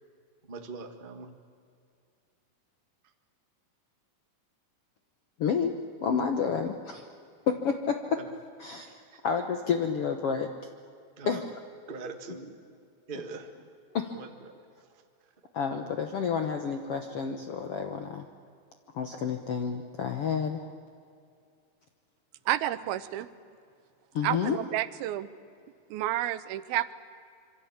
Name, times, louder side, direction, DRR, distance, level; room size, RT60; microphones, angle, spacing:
voice 1, 0.5-1.3 8.1-8.3 8.8-9.2 11.2-11.4 11.9-12.6 13.1-13.5 14.1-14.5 15.7-15.9, right 4 dB, 40° right, 5 dB, 0.7 m, -42 dB
voice 2, 5.4-5.7 6.0-7.0 7.5-8.2 8.6-10.5 11.3-11.4 13.9-14.1 15.5-18.3 18.9-20.6 24.1-24.6, left 6 dB, 65° left, 6 dB, 1.4 m, -30 dB
voice 3, 22.5-23.3 24.2-25.3 25.9-26.9, right 13 dB, 85° right, 14 dB, 2.7 m, -30 dB
26.5 x 24.0 x 8.6 m, 2.4 s
omnidirectional pair, 4.3 m